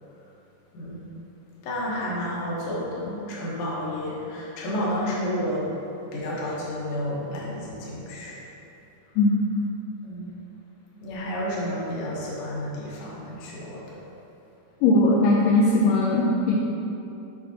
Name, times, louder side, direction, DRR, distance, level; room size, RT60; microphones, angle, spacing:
voice 1, 1.6-5.6 6.1-8.4 10.0-10.3 11.0-14.0, equal, 60° left, -6 dB, 1.4 m, -31 dB
voice 2, 9.2-9.5 14.8-16.6, left 2 dB, 80° left, -3 dB, 2.0 m, -19 dB
7.9 x 5.1 x 2.8 m, 2.9 s
omnidirectional pair, 4.1 m